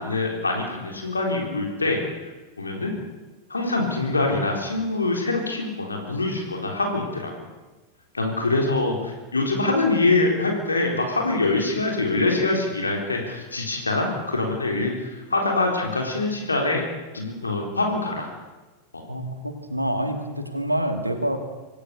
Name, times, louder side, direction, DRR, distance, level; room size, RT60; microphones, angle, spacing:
voice 1, 0.0-2.0 2.6-2.9 3.5-7.3 8.1-16.8 17.1-18.3 18.9-19.0, left 2 dB, 80° left, 1 dB, 3.8 m, -24 dB
voice 2, 19.1-21.4, right 1 dB, 85° right, 5 dB, 2.5 m, -27 dB
26.0 x 16.5 x 6.9 m, 1.2 s
figure-of-eight pair, 90°, 0 cm